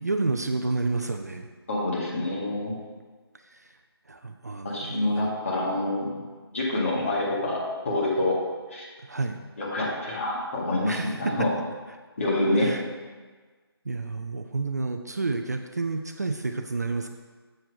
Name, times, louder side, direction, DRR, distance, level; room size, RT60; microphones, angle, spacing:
voice 1, 0.0-1.5 3.5-3.7 4.1-5.2 9.0-9.4 10.9-11.5 12.5-12.8 13.9-17.1, right 3 dB, 40° right, 5 dB, 0.4 m, -30 dB
voice 2, 1.7-2.7 4.6-6.1 6.5-8.4 8.7-8.9 9.6-11.5 12.2-12.7, left 1 dB, 30° left, -5 dB, 2.0 m, -26 dB
7.6 x 4.4 x 6.3 m, 1.4 s
figure-of-eight pair, 165°, 13 cm